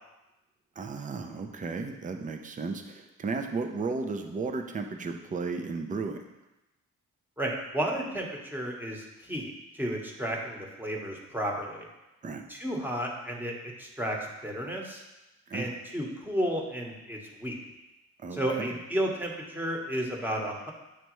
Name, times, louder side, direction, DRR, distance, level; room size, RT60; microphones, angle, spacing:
voice 1, 0.8-6.2 12.2-12.4 15.5-15.7 18.2-18.8, right 4 dB, 25° right, 5 dB, 0.6 m, -34 dB
voice 2, 7.4-11.9 12.5-15.0 15.5-17.6 18.3-20.7, right 1 dB, 5° right, 0 dB, 1.1 m, -32 dB
9.0 x 3.3 x 3.1 m, 1.0 s
cardioid pair, 90°, 30 cm